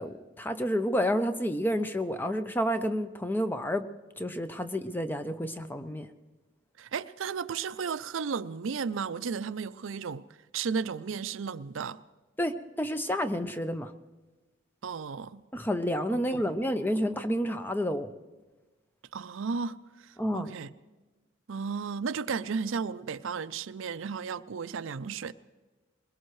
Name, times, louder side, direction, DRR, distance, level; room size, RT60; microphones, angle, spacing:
voice 1, 0.0-3.9 4.2-6.1 12.4-13.9 15.5-18.1 20.2-20.5, equal, 10° left, 0.5 m, -30 dB
voice 2, 6.8-10.3 10.5-12.0 14.8-15.4 16.1-16.2 19.1-19.8 20.0-20.7 21.5-25.3, right 5 dB, 80° right, 0.5 m, -34 dB
22.0 x 20.5 x 3.2 m
head